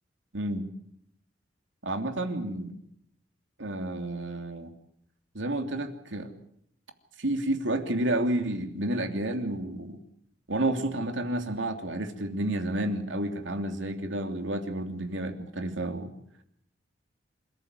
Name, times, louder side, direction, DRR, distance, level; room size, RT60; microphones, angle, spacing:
voice 1, 1.8-2.8 3.6-4.7 5.3-6.3 7.2-10.0 10.5-16.1, right 1 dB, 90° right, 6 dB, 3.0 m, -30 dB
27.5 x 14.0 x 9.7 m, 0.73 s
head